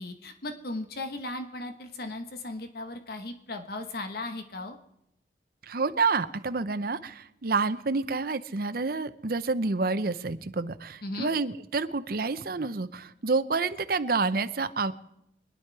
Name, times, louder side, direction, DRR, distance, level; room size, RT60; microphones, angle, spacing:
voice 1, 0.0-4.7 11.0-11.3, left 2 dB, 55° left, 6 dB, 1.2 m, -36 dB
voice 2, 5.6-14.9, right 4 dB, 55° right, 11 dB, 0.7 m, -28 dB
25.0 x 10.0 x 4.7 m, 0.78 s
head